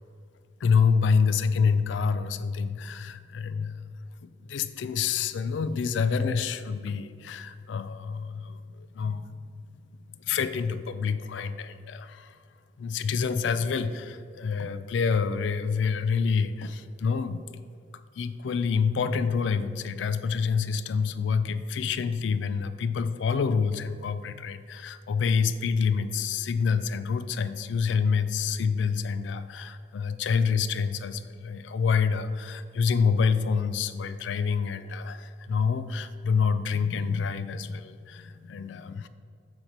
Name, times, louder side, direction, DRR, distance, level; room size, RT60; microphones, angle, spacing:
voice 1, 0.6-3.9 4.2-9.3 10.2-12.4 12.8-17.4 18.2-39.1, left 5 dB, 80° left, 12 dB, 0.4 m, -27 dB
7.9 x 3.0 x 5.2 m, 2.3 s
head